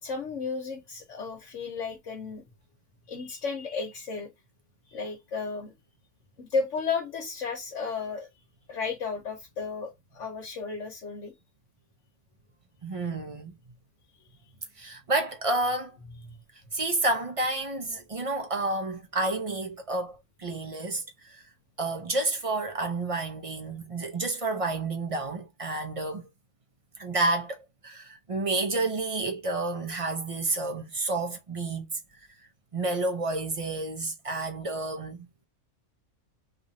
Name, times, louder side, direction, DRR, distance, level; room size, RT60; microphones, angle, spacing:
voice 1, 0.0-2.4 3.1-4.3 4.9-5.7 6.4-8.3 8.7-11.3 16.2-16.4, left 4 dB, 70° left, 1.3 m, -33 dB
voice 2, 12.8-13.5 14.8-16.0 16.7-21.4 21.8-26.3 27.0-27.6 27.8-31.9 32.7-35.3, right 2 dB, 35° right, 0.6 m, -30 dB
3.2 x 2.5 x 4.0 m
omnidirectional pair, 1.3 m